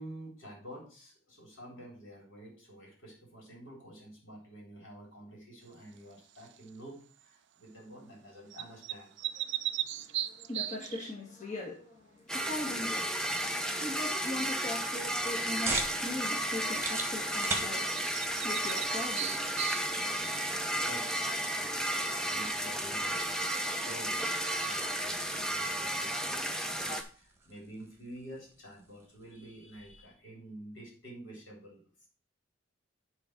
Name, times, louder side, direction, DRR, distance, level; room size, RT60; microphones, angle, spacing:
voice 1, 0.0-9.2 20.2-23.4 23.8-24.2 24.6-31.8, right 1 dB, 65° left, -1 dB, 3.9 m, -49 dB
sound 1, 6.4-6.7 8.5-11.1 17.5-17.6 17.9-20.3, right 13 dB, 55° right, 0.4 m, -37 dB
voice 2, 9.5-18.0 18.4-20.1, left 2 dB, 35° left, -4 dB, 1.8 m, -41 dB
sound 2, 12.3-27.0, equal, 5° left, 0.7 m, -33 dB
sound 3, 15.0-30.1, right 3 dB, 15° right, 1.3 m, -44 dB
8.5 x 4.0 x 6.0 m, 0.40 s
head